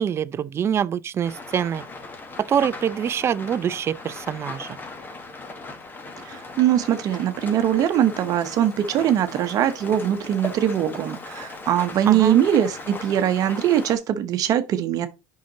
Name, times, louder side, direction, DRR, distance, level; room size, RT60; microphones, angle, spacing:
voice 1, 0.0-1.8 2.5-4.8 12.1-12.4, right 8 dB, 35° right, 0.5 m, -25 dB
Rain, 1.2-14.0, left 3 dB, 25° left, 1.5 m, -38 dB
voice 2, 6.2-15.1, right 10 dB, 50° right, 1.0 m, -21 dB
7.6 x 5.8 x 4.0 m
supercardioid pair, 110°, 8 cm